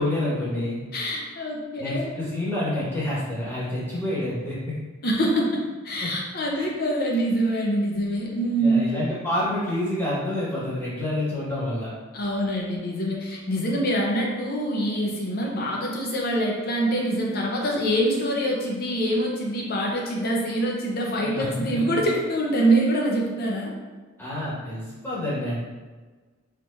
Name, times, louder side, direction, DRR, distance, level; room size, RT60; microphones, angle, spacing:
voice 1, 0.0-0.8 1.8-4.8 6.0-6.1 6.5-6.7 8.6-11.9 21.2-21.8 24.2-25.6, left 1 dB, 10° left, -9 dB, 1.4 m, -28 dB
voice 2, 0.9-2.1 5.0-8.9 12.1-23.7, right 1 dB, 50° left, -2 dB, 0.8 m, -25 dB
4.3 x 3.1 x 2.6 m, 1.3 s
head